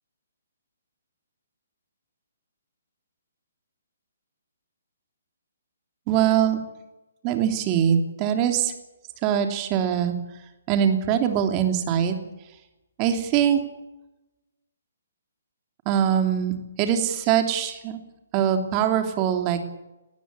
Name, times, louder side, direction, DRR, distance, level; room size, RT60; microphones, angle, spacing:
voice 1, 6.1-6.6 7.2-8.7 9.2-10.1 10.7-12.1 13.0-13.6 15.8-16.5 16.8-18.0 18.3-19.6, right 9 dB, 30° right, 6 dB, 3.1 m, -22 dB
20.0 x 14.5 x 9.8 m, 0.98 s
figure-of-eight pair, 135°, 0 cm